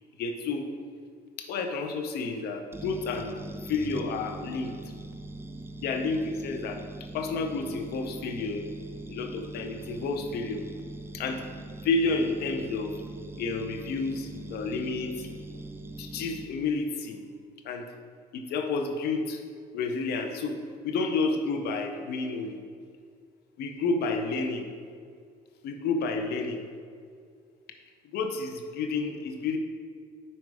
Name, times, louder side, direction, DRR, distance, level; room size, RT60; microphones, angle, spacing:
voice 1, 0.2-0.7 1.4-3.3 3.7-4.7 5.8-6.8 7.1-8.6 9.1-10.6 11.1-11.4 11.8-12.9 13.4-15.3 16.0-17.2 17.6-17.9 18.3-19.4 19.7-20.6 20.8-22.6 23.6-24.7 25.6-26.6 28.1-29.6, left 3 dB, 70° left, 5 dB, 0.7 m, -30 dB
sound 1, 2.7-16.4, right 2 dB, 15° right, 0.4 m, -42 dB
5.4 x 4.4 x 4.7 m, 2.2 s
cardioid pair, 110°, 17 cm